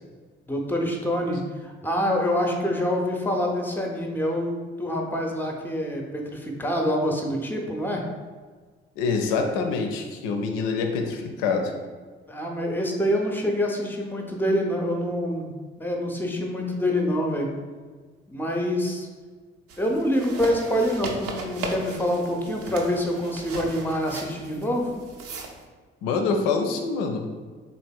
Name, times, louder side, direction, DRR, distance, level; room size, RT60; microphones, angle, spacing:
voice 1, 0.5-8.0 12.3-17.5 18.3-19.1 19.8-24.9, equal, 5° left, 1 dB, 0.6 m, -26 dB
voice 2, 9.0-11.7 26.0-27.3, left 4 dB, 65° left, 4 dB, 0.5 m, -25 dB
sound 1, 19.7-25.6, right 2 dB, 50° right, 0.5 m, -37 dB
3.8 x 3.3 x 2.3 m, 1.4 s
figure-of-eight pair, 45°, 30 cm